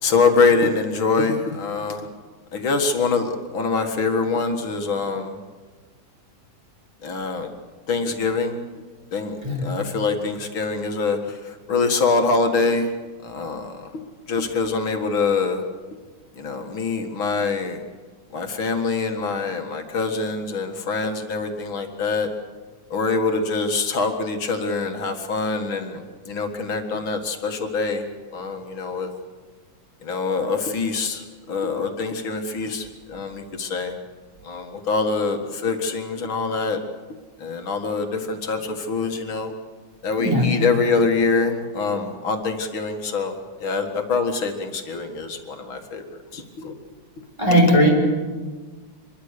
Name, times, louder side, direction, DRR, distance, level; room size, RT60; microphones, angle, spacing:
voice 1, 0.0-2.1 2.5-5.4 7.0-7.5 7.9-8.6 9.1-12.9 13.2-13.7 14.3-15.6 16.4-17.8 18.3-22.3 22.9-28.1 28.3-29.1 30.0-33.9 34.4-36.8 37.4-39.5 40.0-46.8 47.5-47.6, left 4 dB, 85° left, 4 dB, 2.6 m, -24 dB
voice 2, 47.4-47.9, equal, 15° right, 0 dB, 5.4 m, -17 dB
25.0 x 22.5 x 6.7 m, 1.4 s
omnidirectional pair, 2.2 m